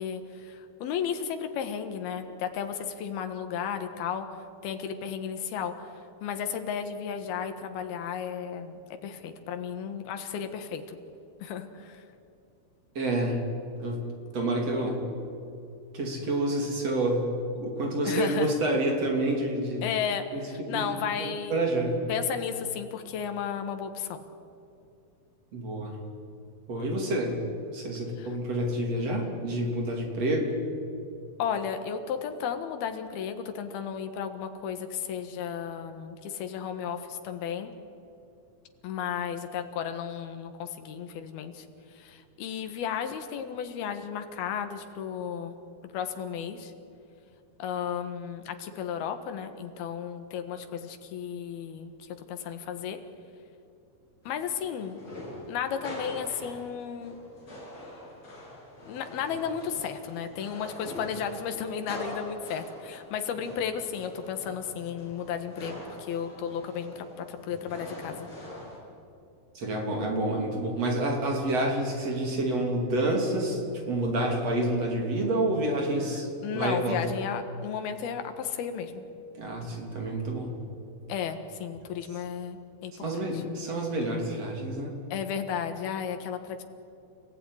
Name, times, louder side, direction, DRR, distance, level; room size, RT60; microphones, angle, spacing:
voice 1, 0.0-4.3 4.6-5.7 6.2-11.0 11.4-12.0 18.1-18.5 19.8-21.6 22.1-24.2 28.2-28.3 31.4-37.7 38.8-41.7 42.0-45.6 45.9-46.7 47.6-53.0 54.3-55.0 55.5-57.2 58.9-68.3 76.4-79.0 81.1-83.1 83.3-83.4 85.1-86.6, left 7 dB, 90° left, 7 dB, 3.4 m, -34 dB
voice 2, 13.0-13.4 13.7-14.0 14.3-15.1 15.9-19.8 20.3-22.0 25.5-26.0 26.7-27.4 27.7-30.6 69.6-73.6 73.9-76.3 76.5-77.0 79.4-80.5 83.0-84.9, right 1 dB, 45° right, 2 dB, 4.2 m, -28 dB
sound 1, 54.2-68.8, left 1 dB, 30° left, 7.8 m, -44 dB
30.0 x 16.5 x 9.9 m, 2.7 s
omnidirectional pair, 4.3 m